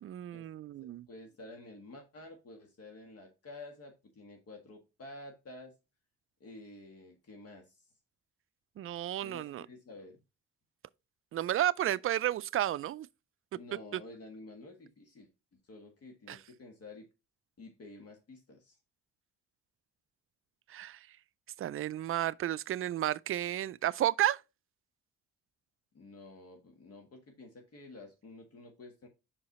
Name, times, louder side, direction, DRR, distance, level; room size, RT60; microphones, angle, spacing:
voice 1, 0.0-1.0 8.8-9.6 11.3-13.1 16.3-16.4 20.7-21.0 21.6-24.4, right 12 dB, 45° right, 0.4 m, -32 dB
voice 2, 0.8-5.7 6.4-7.8 9.2-10.2 13.5-17.1 17.6-18.8 25.9-29.1, left 2 dB, 50° left, 1.6 m, -50 dB
5.6 x 4.8 x 4.1 m
cardioid pair, 90°, 30 cm